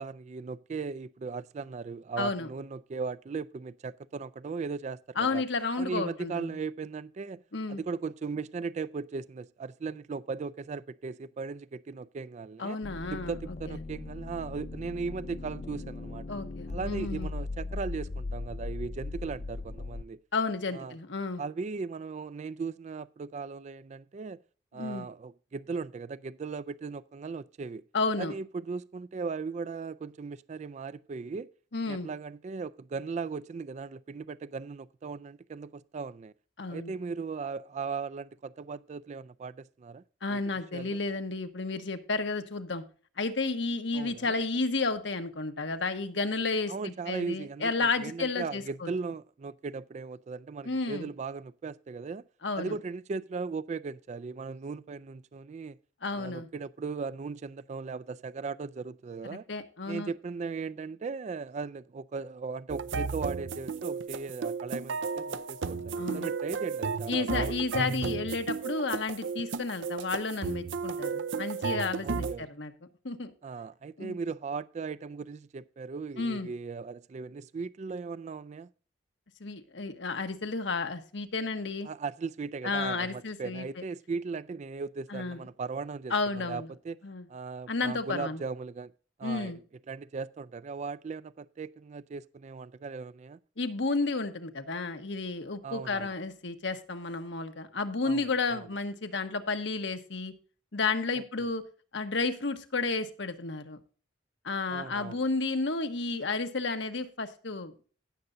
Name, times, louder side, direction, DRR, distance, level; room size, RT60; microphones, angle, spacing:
voice 1, 0.0-5.4 5.8-7.4 7.7-12.8 13.1-16.3 16.7-20.2 20.7-21.0 21.4-24.4 24.7-27.8 28.2-31.5 31.8-36.3 36.7-40.0 40.3-40.4 40.7-41.0 43.9-44.4 46.7-52.2 52.6-55.8 56.1-59.5 59.9-67.7 72.0-72.5 73.4-78.7 81.8-87.0 87.3-88.9 89.2-89.6 89.9-93.4 95.6-96.1 98.0-98.7 101.2-101.5 104.7-105.2, right 4 dB, 40° right, 0.3 m, -38 dB
voice 2, 2.2-2.5 5.2-6.6 7.5-7.8 12.6-13.4 13.7-13.8 16.3-17.3 20.3-21.4 24.7-25.1 27.9-28.3 31.7-32.1 36.6-36.9 40.2-42.8 43.2-48.9 50.6-51.1 52.4-52.8 56.0-56.5 59.3-60.1 66.0-66.3 67.1-72.7 73.0-73.3 74.0-74.2 76.2-76.5 79.4-81.9 82.6-83.7 85.1-85.4 86.1-86.7 87.0-87.3 87.7-88.4 89.2-89.6 93.6-100.3 100.7-101.6 101.9-103.8 104.4-107.8, left 3 dB, 75° left, 1.2 m, -32 dB
sound 1, 12.8-20.0, left 3 dB, 40° left, 0.4 m, -38 dB
sound 2, 62.7-72.4, right 5 dB, 85° right, 0.6 m, -33 dB
17.0 x 6.8 x 2.6 m
head